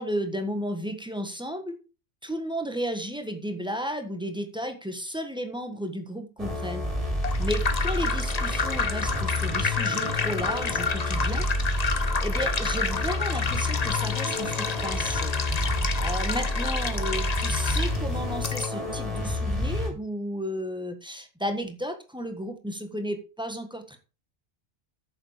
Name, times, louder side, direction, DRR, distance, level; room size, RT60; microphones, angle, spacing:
voice 1, 0.0-1.8 2.2-6.9 7.4-11.9 12.2-24.0, equal, 5° right, 7 dB, 1.4 m, -33 dB
sound 1, 6.4-19.9, left 1 dB, 30° right, 2.9 m, -29 dB
sound 2, 7.0-18.7, left 5 dB, 35° left, 0.9 m, -30 dB
9.1 x 7.0 x 5.1 m, 0.33 s
omnidirectional pair, 1.2 m